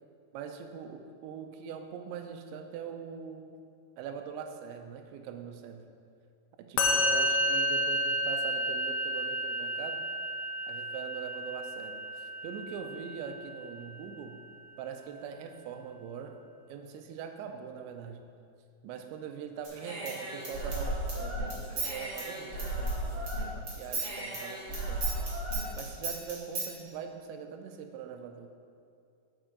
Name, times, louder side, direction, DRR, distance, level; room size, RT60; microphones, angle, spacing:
voice 1, 0.3-3.6 4.0-5.8 6.6-10.0 10.7-14.4 14.8-16.4 16.7-18.2 18.8-25.1 25.7-28.5, right 7 dB, 80° right, 6 dB, 2.8 m, -42 dB
Musical instrument, 6.8-14.1, equal, 85° left, 2.2 m, -31 dB
Human voice / Scissors, 19.6-23.4 23.7-26.7, right 2 dB, 60° right, 1.2 m, -34 dB
9.1 x 6.5 x 3.9 m, 2.4 s
omnidirectional pair, 5.5 m